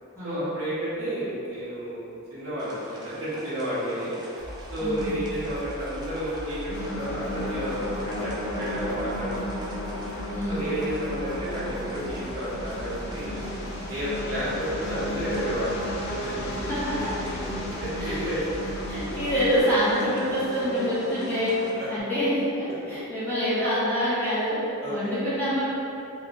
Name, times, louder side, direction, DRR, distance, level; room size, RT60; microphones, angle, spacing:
voice 1, 0.2-2.0 2.3-4.1 4.7-9.3 10.5-13.3 13.9-15.8 16.1-16.6 17.0-17.5 17.8-18.5 18.8-18.9 21.8-21.9 24.8-25.1, equal, 75° right, -11 dB, 1.2 m, -31 dB
sound 1, 2.6-21.7, right 1 dB, 20° right, 0.3 m, -44 dB
sound 2, 4.4-19.6, equal, 50° right, 0.8 m, -40 dB
voice 2, 4.8-5.2 10.3-10.6 16.6-17.1 18.0-18.3 18.9-24.6 24.9-25.6, equal, 10° left, -12 dB, 0.8 m, -26 dB
sound 3, 6.7-22.0, left 1 dB, 50° left, 0.4 m, -34 dB
3.1 x 2.8 x 2.5 m, 2.8 s
head